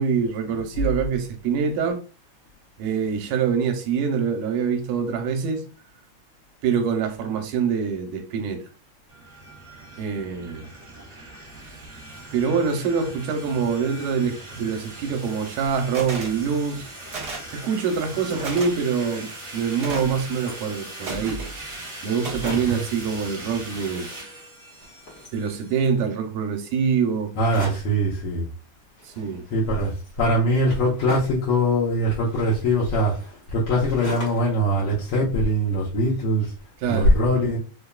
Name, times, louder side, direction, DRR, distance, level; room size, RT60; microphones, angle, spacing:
voice 1, 0.0-2.0 2.8-5.6 6.6-8.6 10.0-10.7 12.3-16.8 17.5-21.4 22.0-24.1 25.3-27.3 29.0-29.4 36.8-37.1, right 6 dB, 80° right, 2.1 m, -25 dB
sound 1, 9.1-25.9, right 1 dB, 15° right, 1.0 m, -40 dB
sound 2, 15.9-16.4 17.1-17.5 18.4-18.7 19.8-20.2 21.0-21.5 22.2-22.7, right 3 dB, 60° right, 1.0 m, -33 dB
sound 3, 18.1-18.7 19.2-19.3 19.5-20.8 21.4-21.5 21.7-21.8 22.1-22.9 23.6-24.4 24.7-26.0 27.4-28.0 29.0-31.5 32.2-34.6 34.9-35.8, left 1 dB, 60° left, 0.7 m, -41 dB
voice 2, 22.4-22.8 27.4-28.4 29.5-29.9 30.2-33.2 33.5-36.5 36.9-37.6, equal, 80° left, 1.3 m, -22 dB
5.2 x 2.2 x 2.3 m
omnidirectional pair, 3.7 m